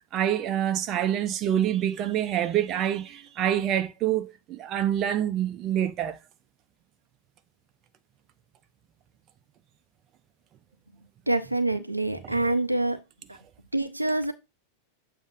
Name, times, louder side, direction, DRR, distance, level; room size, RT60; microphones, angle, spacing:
voice 1, 0.1-6.2 12.2-12.4, right 10 dB, 35° right, 0.7 m, -26 dB
voice 2, 11.3-13.0 13.3-13.4 13.7-14.3, right 2 dB, 85° right, 0.6 m, -26 dB
7.2 x 2.7 x 5.3 m
figure-of-eight pair, 90°, 0 cm